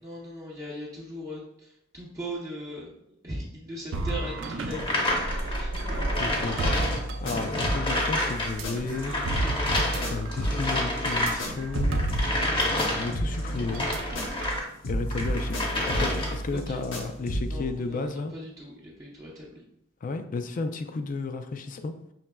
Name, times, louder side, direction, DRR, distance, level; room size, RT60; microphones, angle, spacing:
voice 1, 0.0-2.9 3.2-6.0 16.5-16.8 17.4-19.6, equal, 15° right, -6 dB, 0.6 m, -39 dB
sound 1, 3.9-7.8 8.4-12.7 12.9-13.1 13.7-14.6, right 2 dB, 80° right, 0.5 m, -33 dB
sound 2, 4.7-8.5 8.8-14.7 15.1-16.5, left 1 dB, 25° left, 0.8 m, -29 dB
voice 2, 6.2-6.9 7.2-9.1 10.1-12.0 12.9-13.9 14.9-15.7 16.0-18.3 20.0-21.9, left 3 dB, 45° left, 8 dB, 0.4 m, -33 dB
sound 3, 6.6-9.1 9.3-14.6 14.8-17.6, equal, 70° left, 0.9 m, -32 dB
5.8 x 3.1 x 2.2 m, 0.76 s
head